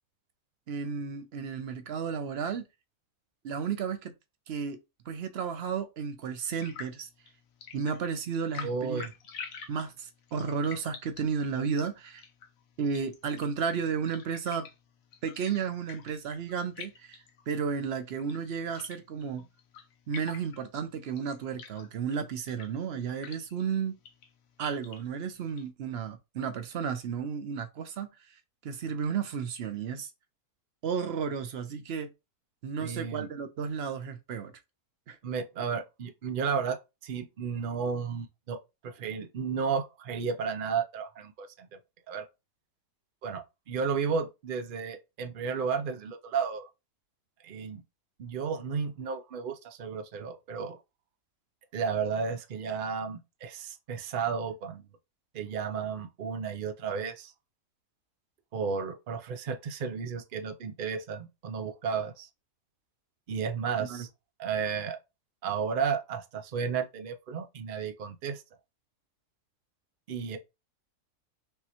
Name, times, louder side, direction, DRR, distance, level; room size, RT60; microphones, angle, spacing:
voice 1, 0.7-2.7 3.4-4.1 4.5-4.8 5.1-7.1 7.7-9.0 9.7-12.2 12.8-14.7 15.2-17.2 17.5-19.5 20.1-24.0 24.6-30.1 30.8-32.1 32.6-34.5 35.1-35.2 63.8-64.1, right 6 dB, 60° right, 0.7 m, -33 dB
sound 1, 6.5-25.7, left 7 dB, 65° left, 1.1 m, -49 dB
voice 2, 8.6-9.1 32.8-33.3 35.2-38.6 38.8-41.8 42.1-42.3 43.2-46.7 47.4-47.8 48.2-50.8 51.7-54.8 55.3-57.3 58.5-62.3 63.3-64.1 64.4-65.0 65.4-68.4 70.1-70.4, right 6 dB, 90° right, 0.4 m, -33 dB
5.3 x 3.2 x 2.9 m
omnidirectional pair, 1.7 m